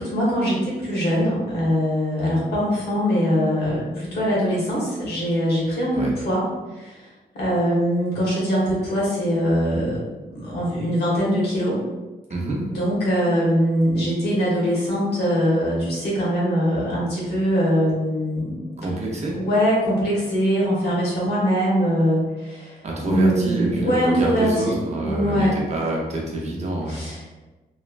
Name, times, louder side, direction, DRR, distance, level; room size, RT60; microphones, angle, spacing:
voice 1, 0.0-6.5 6.7-7.1 7.3-11.8 12.6-18.7 19.3-22.8 23.0-25.6 26.9-27.4, equal, 85° left, -6 dB, 1.2 m, -22 dB
voice 2, 18.8-19.4 22.8-27.0, right 1 dB, 45° right, -2 dB, 0.6 m, -27 dB
3.0 x 2.2 x 2.4 m, 1.1 s
wide cardioid pair, 120°, 16 cm